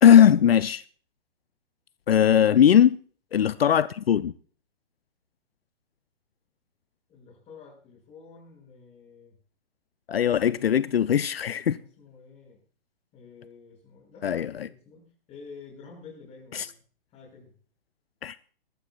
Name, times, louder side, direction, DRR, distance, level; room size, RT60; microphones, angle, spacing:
voice 1, 0.0-0.8 2.1-3.0 3.3-4.3 10.1-11.8 14.2-14.7 16.5-16.7 18.2-18.4, left 9 dB, 75° left, 0.5 m, -19 dB
voice 2, 7.1-9.3 11.7-12.6 13.1-16.8 17.1-17.5, left 5 dB, 20° left, 6.6 m, -49 dB
21.5 x 13.0 x 2.4 m
figure-of-eight pair, 125°, 30 cm